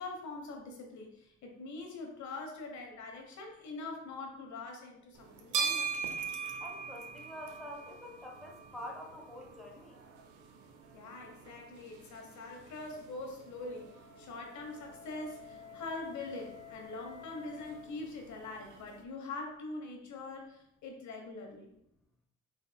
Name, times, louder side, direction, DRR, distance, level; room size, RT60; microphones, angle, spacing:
voice 1, 0.0-5.9 7.7-7.8 10.9-21.7, left 3 dB, 70° left, 2 dB, 1.1 m, -43 dB
sound 1, 5.2-19.0, right 6 dB, 80° right, 0.7 m, -42 dB
voice 2, 6.6-10.0, left 1 dB, ahead, -1 dB, 0.9 m, -46 dB
Wind instrument woodwind instrument, 13.3-17.9, left 9 dB, 50° left, 1.6 m, -52 dB
5.3 x 4.1 x 2.2 m, 0.76 s
cardioid pair, 90°, 30 cm